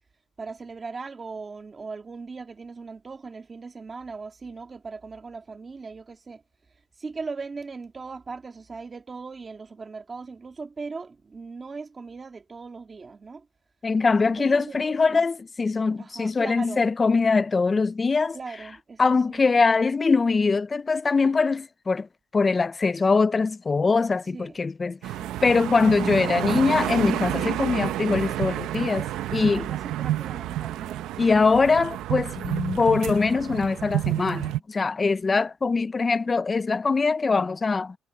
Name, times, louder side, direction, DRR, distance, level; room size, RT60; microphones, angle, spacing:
voice 1, 0.4-6.4 7.0-13.5 14.3-15.3 16.0-16.8 18.3-19.5 24.3-24.6 25.2-25.4 29.4-31.5, right 4 dB, 20° right, 1.9 m, -39 dB
voice 2, 13.8-18.4 19.0-22.1 22.3-25.0 25.4-29.1 29.3-29.7 31.2-38.0, left 4 dB, 20° left, 0.3 m, -22 dB
sound 1, 25.0-34.6, right 13 dB, 80° right, 0.7 m, -29 dB
cardioid pair, 170°, 0 cm